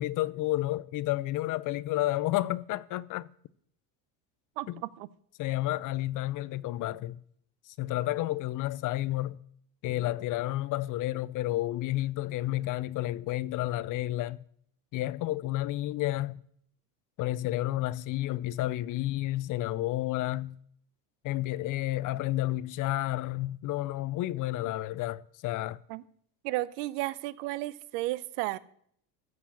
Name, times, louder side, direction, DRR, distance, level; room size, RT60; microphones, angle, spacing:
voice 1, 0.0-3.3 4.7-4.8 5.4-7.2 7.7-9.4 9.8-14.4 14.9-16.4 17.2-20.6 21.2-25.8, left 16 dB, 45° left, 0.4 m, -31 dB
voice 2, 4.6-5.1 25.9-26.0 26.4-28.6, right 18 dB, 80° right, 0.7 m, -33 dB
14.0 x 4.9 x 7.1 m
supercardioid pair, 115°, 47 cm